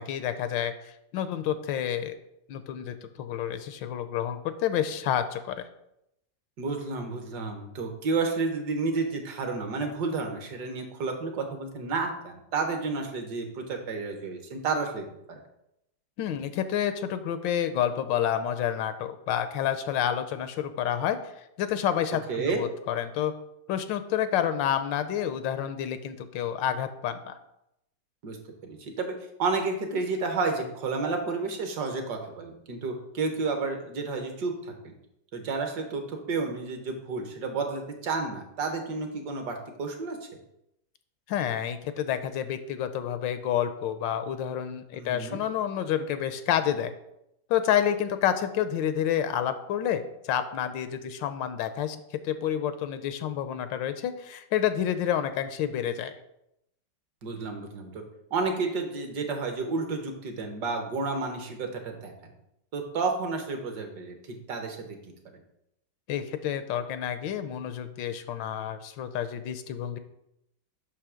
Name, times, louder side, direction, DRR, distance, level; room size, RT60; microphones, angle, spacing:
voice 1, 0.0-2.2 2.5-5.7 16.2-21.2 21.6-23.3 23.7-27.4 41.3-46.9 47.5-52.0 52.2-56.1 66.1-70.0, left 10 dB, 85° left, 10 dB, 1.3 m, -29 dB
voice 2, 6.6-15.4 22.3-22.6 28.2-28.4 28.6-29.1 29.4-34.9 35.3-40.2 44.9-45.4 57.2-58.0 58.3-62.1 62.7-65.0, right 4 dB, 65° right, 4 dB, 1.6 m, -31 dB
8.4 x 2.9 x 6.2 m, 0.82 s
omnidirectional pair, 2.0 m